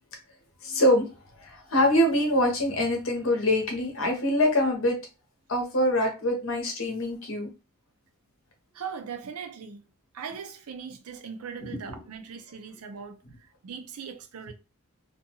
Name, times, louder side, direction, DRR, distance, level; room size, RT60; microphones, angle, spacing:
voice 1, 0.6-1.1 1.4-5.0 5.5-7.5, left 1 dB, 65° left, 0.8 m, -24 dB
voice 2, 8.7-9.9 10.1-14.5, right 6 dB, 85° right, 0.5 m, -40 dB
2.5 x 2.2 x 2.8 m
head